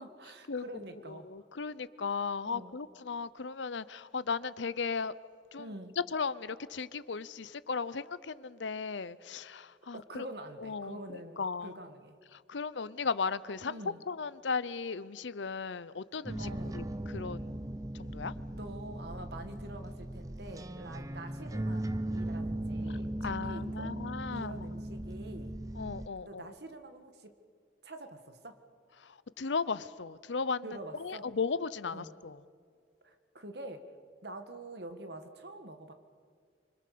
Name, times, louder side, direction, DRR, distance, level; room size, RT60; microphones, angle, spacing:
voice 1, 0.0-1.3 2.4-2.8 5.6-6.0 9.9-12.2 13.7-14.0 16.4-16.8 18.5-24.0 24.3-25.5 26.2-27.3 27.8-28.6 30.6-31.3 31.9-32.1 33.0-33.8 34.2-35.9, right 1 dB, 65° right, 7 dB, 1.8 m, -46 dB
voice 2, 1.1-5.1 5.5-5.7 6.1-10.3 10.6-11.0 11.4-11.8 12.3-13.7 14.1-17.5 17.9-18.3 22.9-24.7 25.8-26.4 29.0-32.4, left 5 dB, 90° left, 17 dB, 0.7 m, -36 dB
sound 1, 16.3-26.1, right 1 dB, 20° right, 0.6 m, -38 dB
25.5 x 25.0 x 6.8 m, 2.1 s
head